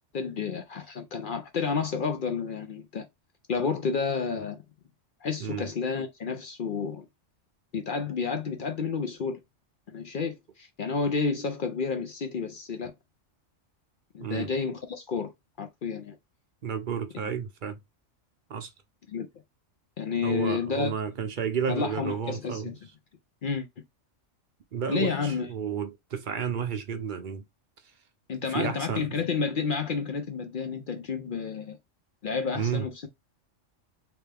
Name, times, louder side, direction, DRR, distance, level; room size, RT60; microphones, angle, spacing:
voice 1, 0.1-3.1 3.5-4.6 5.2-7.1 7.7-9.4 9.9-12.9 14.1-15.3 15.6-16.1 19.1-19.3 20.0-20.9 21.7-22.8 23.4-23.7 24.9-25.5 28.3-31.8 32.2-33.1, left 5 dB, 55° left, 0.6 m, -30 dB
voice 2, 14.2-14.5 16.6-17.8 18.5-18.7 20.2-22.7 24.7-27.4 28.5-29.2 32.5-32.9, right 7 dB, 50° right, 0.7 m, -31 dB
3.2 x 3.0 x 3.3 m
omnidirectional pair, 1.3 m